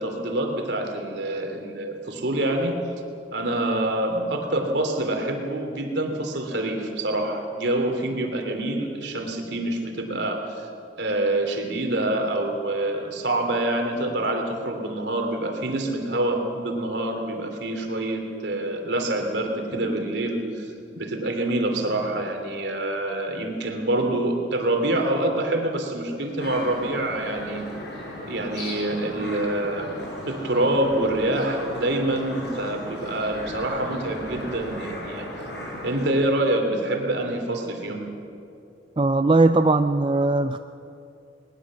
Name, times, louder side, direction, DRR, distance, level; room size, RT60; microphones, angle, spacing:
voice 1, 0.0-2.8 3.3-10.7 11.0-20.7 21.0-27.7 28.3-29.9 30.3-35.3 35.8-38.0, right 1 dB, 70° right, 4 dB, 3.1 m, -26 dB
sound 1, 26.4-36.1, left 1 dB, 65° left, 6.3 m, -36 dB
voice 2, 39.0-40.6, right 2 dB, 25° right, 9 dB, 0.4 m, -19 dB
20.5 x 20.5 x 7.6 m, 2.6 s
head